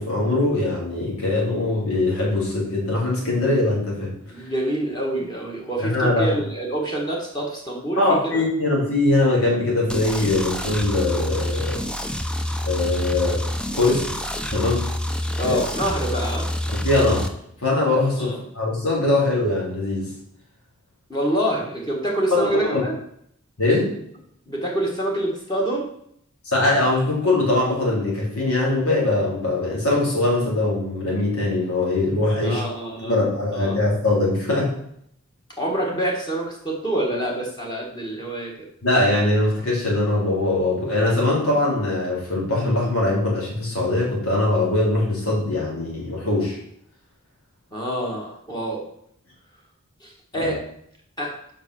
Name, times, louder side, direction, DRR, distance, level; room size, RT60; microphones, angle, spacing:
voice 1, 0.0-4.1 5.8-6.3 8.0-11.8 12.6-13.5 13.7-14.1 14.5-14.9 15.4-15.6 16.8-17.3 17.6-20.1 22.3-22.8 23.6-23.9 26.4-32.6 33.0-34.8 38.8-46.6 50.3-50.5, left 2 dB, 85° left, -4 dB, 3.3 m, -22 dB
voice 2, 4.3-8.4 15.4-16.5 18.2-18.4 21.1-22.9 24.5-25.9 32.4-33.2 33.5-33.8 35.6-38.5 47.7-48.9 50.0-50.6 51.2-51.3, right 1 dB, 20° left, -2 dB, 1.5 m, -26 dB
sound 1, 9.9-17.3, left 1 dB, 5° left, 0.4 m, -27 dB
5.5 x 5.2 x 6.2 m, 0.69 s
head